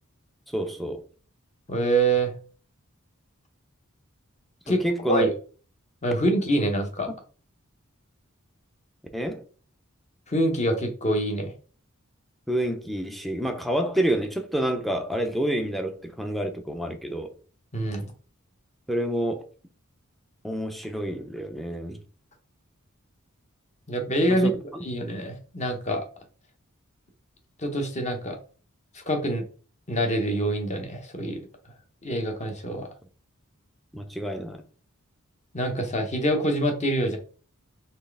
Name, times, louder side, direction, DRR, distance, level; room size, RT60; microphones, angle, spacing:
voice 1, 0.5-1.0 4.7-5.3 9.1-9.4 12.5-17.3 18.9-19.4 20.4-22.0 24.3-24.8 33.9-34.6, right 1 dB, ahead, 0.6 m, -28 dB
voice 2, 1.7-2.3 4.7-4.8 5.1-5.3 6.0-7.1 10.3-11.5 17.7-18.1 23.9-24.5 24.8-26.1 27.6-28.4 28.9-29.4 29.9-31.4 32.0-32.9 35.5-37.2, right 1 dB, 35° left, 1.0 m, -25 dB
4.4 x 3.3 x 3.4 m
head